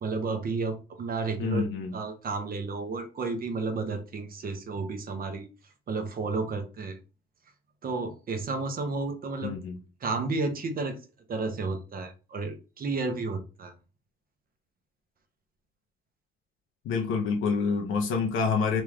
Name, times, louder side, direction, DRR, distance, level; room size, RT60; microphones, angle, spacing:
voice 1, 0.0-1.7 1.9-5.5 5.9-7.0 7.8-9.6 10.0-11.0 11.3-13.7, right 3 dB, 45° right, 0.8 m, -32 dB
voice 2, 1.4-1.9 9.4-9.8 16.8-18.8, left 5 dB, 85° left, 0.6 m, -27 dB
3.0 x 2.4 x 3.3 m
cardioid pair, 90°, 20 cm